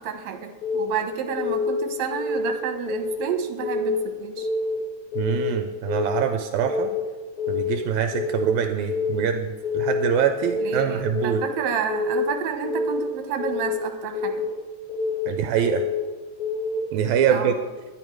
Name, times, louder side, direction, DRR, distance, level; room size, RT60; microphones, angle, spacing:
voice 1, 0.0-4.5 10.6-14.5 17.3-17.6, right 6 dB, 70° right, 5 dB, 2.3 m, -30 dB
Keyboard (musical) / Alarm, 0.6-1.0 1.4-1.7 2.1-2.5 2.9-3.2 3.6-4.0 4.4-4.7 5.1-5.5 5.9-6.2 6.6-7.0 7.4-7.8 8.1-8.5 8.9-9.3 9.6-10.0 10.4-10.8 11.1-11.5 11.9-12.3 12.6-13.0 13.4-13.8 14.1-14.5 14.9-15.3 15.6-16.0 16.4-16.8, left 4 dB, 30° left, 4.3 m, -27 dB
voice 2, 5.2-6.9 7.5-11.4 15.3-15.8 16.9-17.5, right 8 dB, 85° right, 6 dB, 2.0 m, -24 dB
10.5 x 10.5 x 4.7 m, 1.3 s
omnidirectional pair, 3.3 m